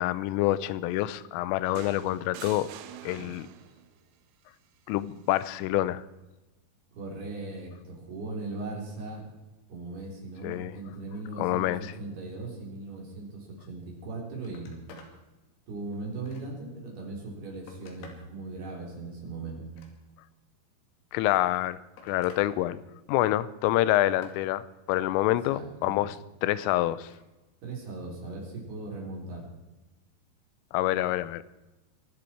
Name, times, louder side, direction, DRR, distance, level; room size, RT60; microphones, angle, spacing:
voice 1, 0.0-2.7 3.0-3.5 4.9-6.0 10.4-10.7 11.4-11.9 21.1-22.8 23.1-26.2 26.4-27.1 30.7-31.4, left 15 dB, 85° left, 17 dB, 3.3 m, -27 dB
sound 1, 1.8-3.9 5.3-5.5, right 11 dB, 75° right, 2.6 m, -45 dB
voice 2, 6.9-9.2 9.7-14.8 15.7-19.6 25.3-26.0 27.6-29.5, right 2 dB, 55° right, -1 dB, 5.7 m, -39 dB
Telephone, 13.9-14.1 14.4-15.2 15.6-16.7 17.3-18.3 19.6-20.4 21.4-22.5 22.8-23.3 23.7-24.4 26.9-27.3 28.7-28.8, left 4 dB, 65° left, 4.5 m, -52 dB
23.5 x 12.0 x 4.6 m, 1.1 s
omnidirectional pair, 5.8 m